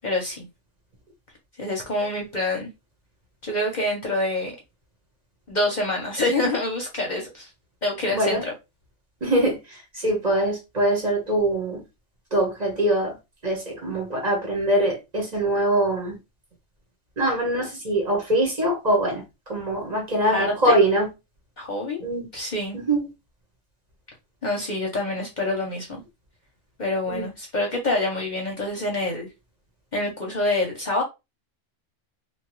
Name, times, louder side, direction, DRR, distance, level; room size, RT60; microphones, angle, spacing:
voice 1, 0.0-0.4 1.6-2.7 3.4-4.6 5.5-7.5 7.8-8.5 20.2-20.8 21.6-22.0 22.3-22.8 24.4-25.9 26.8-29.3 29.9-31.0, left 2 dB, 45° left, 0.7 m, -26 dB
voice 2, 8.1-8.4 9.2-11.8 12.3-13.2 13.4-16.2 17.2-19.2 19.5-21.1 22.0-22.3 22.7-23.0 27.1-27.3, right 1 dB, 40° right, 0.9 m, -23 dB
2.9 x 2.3 x 3.0 m
omnidirectional pair, 1.3 m